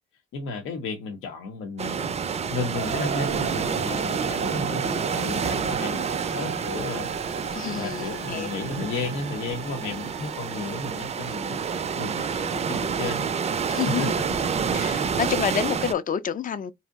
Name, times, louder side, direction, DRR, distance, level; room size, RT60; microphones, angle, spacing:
voice 1, 0.3-2.1 2.5-7.1 7.8-11.6 12.0-14.1 14.6-15.2, left 3 dB, 85° left, 0.7 m, -33 dB
sound 1, 1.8-15.9, right 6 dB, 35° right, 0.4 m, -29 dB
sound 2, 2.7-14.7, right 7 dB, 80° right, 0.7 m, -38 dB
voice 2, 7.5-8.5 13.7-14.1 14.7-16.7, left 8 dB, 45° left, 0.5 m, -28 dB
2.7 x 2.0 x 3.5 m
cardioid pair, 90°, 20 cm